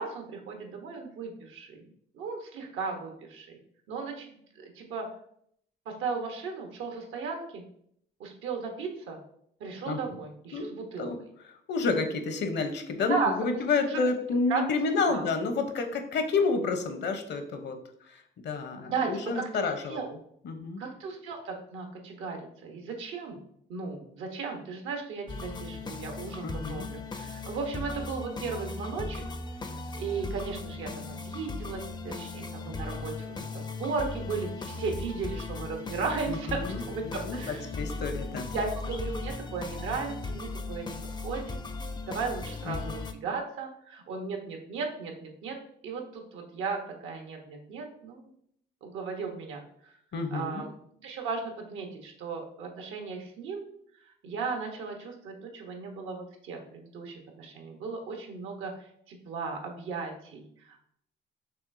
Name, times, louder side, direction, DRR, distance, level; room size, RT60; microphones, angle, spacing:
voice 1, 0.0-1.8 2.1-3.5 3.9-5.1 5.9-7.6 8.2-9.2 9.6-11.1 13.1-13.5 13.9-14.0 14.5-14.8 15.1-15.3 18.8-20.2 20.8-23.4 23.7-29.2 30.0-36.6 36.9-37.7 38.5-40.9 41.2-41.6 42.1-45.6 45.8-48.3 48.8-49.6 50.3-50.7 51.0-53.7 54.2-60.8, right 4 dB, 85° right, 3 dB, 0.9 m, -36 dB
voice 2, 11.7-17.8 18.4-20.0 20.4-20.8 26.4-26.9 36.3-38.5 42.7-42.8 50.1-50.6, left 4 dB, 60° left, 7 dB, 0.7 m, -29 dB
sound 1, 25.3-43.1, left 3 dB, 20° left, 0.4 m, -37 dB
5.9 x 3.2 x 2.6 m, 0.68 s
cardioid pair, 90°, 20 cm